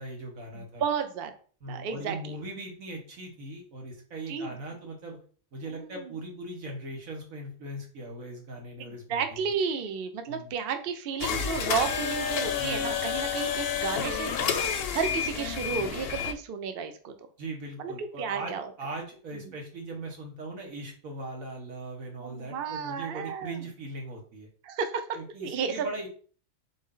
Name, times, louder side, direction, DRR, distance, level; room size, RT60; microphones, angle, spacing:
voice 1, 0.0-0.8 1.6-5.2 5.5-9.4 10.3-10.5 12.5-12.8 17.4-24.5 25.1-26.1, right 2 dB, 85° right, 1 dB, 1.7 m, -39 dB
voice 2, 0.5-1.3 1.7-2.2 4.3-4.5 5.8-6.0 8.8-17.1 17.8-18.7 22.2-23.6 24.6-25.0 25.4-25.9, right 6 dB, 55° right, 8 dB, 0.7 m, -32 dB
sound 1, 11.2-16.3, left 7 dB, 60° left, 0.7 m, -30 dB
4.0 x 3.2 x 3.7 m, 0.42 s
omnidirectional pair, 1.4 m